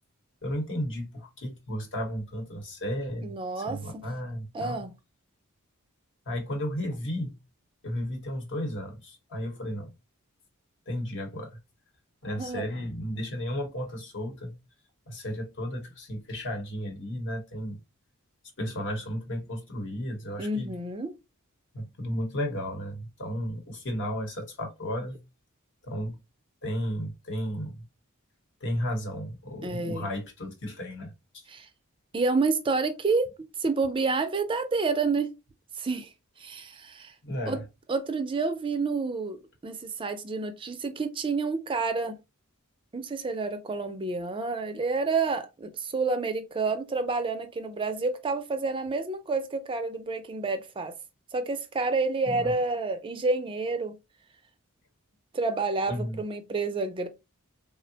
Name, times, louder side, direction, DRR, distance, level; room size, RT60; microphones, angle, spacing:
voice 1, 0.4-4.8 6.3-7.3 7.8-9.9 10.9-11.6 12.2-14.5 15.1-17.8 18.6-20.7 21.7-25.2 25.8-26.1 26.6-27.8 28.6-31.1 37.2-37.6 52.3-52.5 55.9-56.2, equal, 55° left, 1.0 m, -33 dB
voice 2, 3.2-3.8 4.5-4.9 12.4-12.7 20.4-21.1 29.6-30.1 31.5-31.7 32.1-33.3 33.6-35.3 35.8-36.1 36.4-37.1 37.5-37.6 37.9-42.2 42.9-50.9 51.3-54.0 55.3-57.1, right 3 dB, 25° right, 0.4 m, -29 dB
3.6 x 2.1 x 2.7 m
head